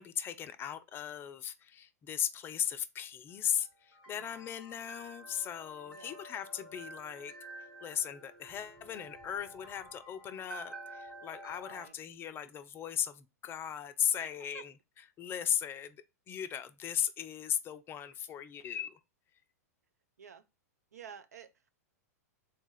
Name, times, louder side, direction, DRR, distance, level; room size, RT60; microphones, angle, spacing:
voice 1, 0.0-7.3 7.8-14.7 15.2-16.0 16.3-19.0, left 9 dB, 25° left, 0.4 m, -37 dB
sound 1, 3.3-11.9, right 2 dB, 5° right, 1.4 m, -50 dB
voice 2, 4.1-4.5 5.9-6.2 11.7-11.9 14.2-14.6 20.2-20.4 20.9-21.7, right 7 dB, 75° right, 0.5 m, -52 dB
3.8 x 2.4 x 3.9 m
figure-of-eight pair, 100°, 9 cm